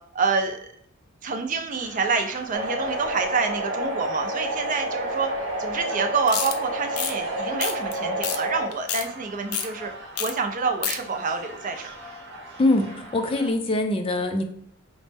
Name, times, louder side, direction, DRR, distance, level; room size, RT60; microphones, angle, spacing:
voice 1, 0.1-0.6 1.2-5.3 5.6-9.9 10.2-11.9, right 4 dB, 40° right, 5 dB, 0.4 m, -27 dB
sound 1, 1.7-13.5, right 1 dB, 55° right, 0.8 m, -43 dB
sound 2, 2.5-8.7, right 1 dB, 85° right, 0.9 m, -29 dB
sound 3, 6.3-6.5 6.9-7.1 7.6-7.9 8.2-8.4 8.7-9.0 9.5-9.7 10.2-10.3 10.6-11.0, left 8 dB, 90° left, 0.5 m, -28 dB
voice 2, 12.6-14.4, left 2 dB, 25° left, 6 dB, 0.3 m, -23 dB
5.0 x 2.1 x 3.3 m, 0.68 s
head